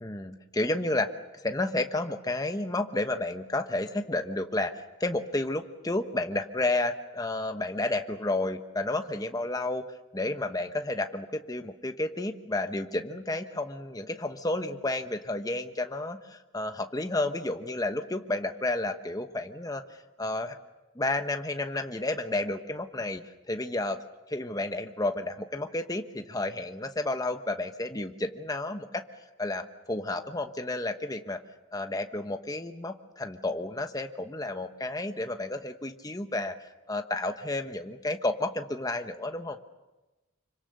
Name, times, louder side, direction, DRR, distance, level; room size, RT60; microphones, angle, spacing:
voice 1, 0.0-1.1 1.4-9.8 10.1-19.8 20.2-20.6 20.9-23.2 23.5-24.0 24.3-29.0 29.4-31.4 31.7-36.6 36.9-39.6, left 2 dB, 20° left, 7 dB, 1.1 m, -31 dB
26.0 x 24.5 x 6.8 m, 1.1 s
head